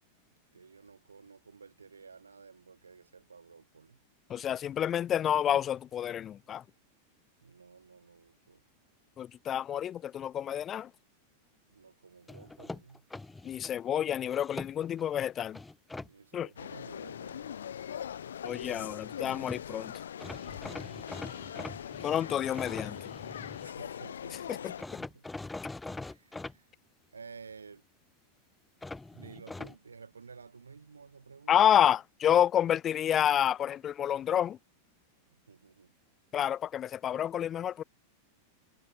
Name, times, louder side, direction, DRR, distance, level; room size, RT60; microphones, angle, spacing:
voice 1, 0.5-4.0 7.4-8.6 11.7-13.1 16.0-17.7 21.4-22.0 23.6-25.3 25.9-26.7 27.1-27.9 29.1-31.6 35.3-36.0, right 5 dB, 75° right, 2.7 m, -53 dB
voice 2, 4.3-6.6 9.2-10.9 13.4-15.6 16.3-16.5 18.4-19.9 22.0-23.0 24.5-25.0 31.5-34.6 36.3-37.8, left 10 dB, 25° left, 0.4 m, -29 dB
sound 1, 12.3-13.7 14.3-15.1 15.5-16.1 19.2-19.3 19.5-19.6 20.2-23.7 24.8-26.6 28.8-29.8, left 2 dB, 10° left, 2.2 m, -43 dB
sound 2, 16.6-24.8, left 9 dB, 65° left, 3.1 m, -41 dB
figure-of-eight pair, 90°, 0 cm